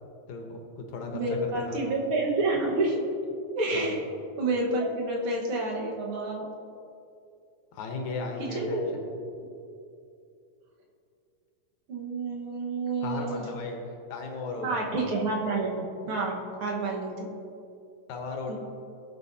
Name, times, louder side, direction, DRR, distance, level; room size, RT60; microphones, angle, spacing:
voice 1, 0.3-1.8 3.7-4.0 7.7-9.0 13.0-13.8 14.1-14.9 18.1-18.6, left 3 dB, 70° left, 2 dB, 2.3 m, -35 dB
voice 2, 1.1-3.0 3.5-4.1 4.4-6.5 8.4-9.0 11.9-13.5 14.6-17.3 18.5-18.6, right 2 dB, 50° right, -2 dB, 2.0 m, -29 dB
17.5 x 7.7 x 2.8 m, 2.6 s
omnidirectional pair, 3.6 m